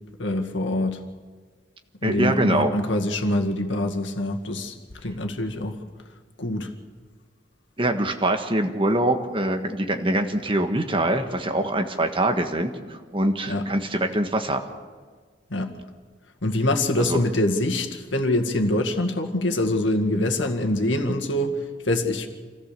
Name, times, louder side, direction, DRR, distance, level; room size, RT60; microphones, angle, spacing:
voice 1, 0.2-1.0 2.0-4.7 5.0-5.8 6.4-6.7 13.5-13.7 15.5-15.7 16.4-22.3, left 1 dB, 85° left, 4 dB, 1.9 m, -24 dB
voice 2, 2.0-2.7 7.8-14.6 17.0-17.2, right 1 dB, 30° right, 5 dB, 1.4 m, -24 dB
27.0 x 15.0 x 6.8 m, 1.5 s
head